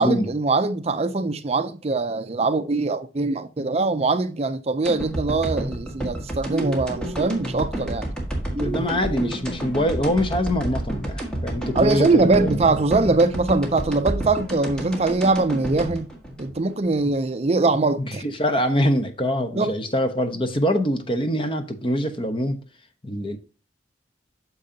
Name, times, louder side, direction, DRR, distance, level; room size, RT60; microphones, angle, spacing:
voice 1, 0.0-8.1 11.7-16.1 16.4-18.2 19.6-19.7, right 3 dB, 35° right, 0.5 m, -22 dB
sound 1, 4.8-17.1 17.4-17.5, right 1 dB, 5° left, 1.7 m, -30 dB
sound 2, 6.5-7.4 8.5-9.4, right 1 dB, 15° right, 1.1 m, -33 dB
voice 2, 8.6-12.7 18.1-22.6 23.0-23.4, equal, 30° left, 0.9 m, -24 dB
8.7 x 6.4 x 2.8 m
head